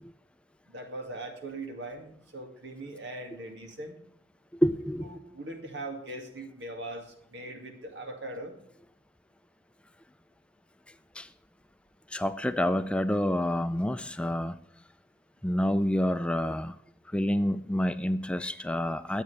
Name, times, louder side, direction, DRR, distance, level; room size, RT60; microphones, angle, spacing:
voice 1, 0.7-4.0 5.0-8.5, right 2 dB, 90° right, 4 dB, 2.3 m, -40 dB
voice 2, 4.6-5.1 11.2-11.3 12.1-14.6 15.4-16.7 17.1-19.2, equal, 5° left, 12 dB, 0.4 m, -28 dB
22.5 x 8.2 x 3.4 m, 0.73 s
head